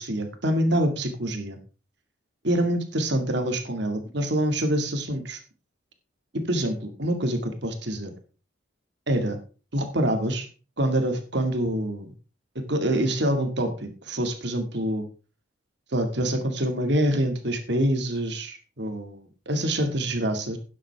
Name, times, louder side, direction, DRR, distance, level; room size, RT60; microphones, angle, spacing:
voice 1, 0.0-1.6 2.4-5.4 6.5-8.1 9.1-9.4 9.7-10.5 10.8-12.1 12.7-15.1 15.9-20.6, right 1 dB, 55° right, 6 dB, 2.1 m, -26 dB
12.0 x 9.9 x 3.5 m, 0.35 s
head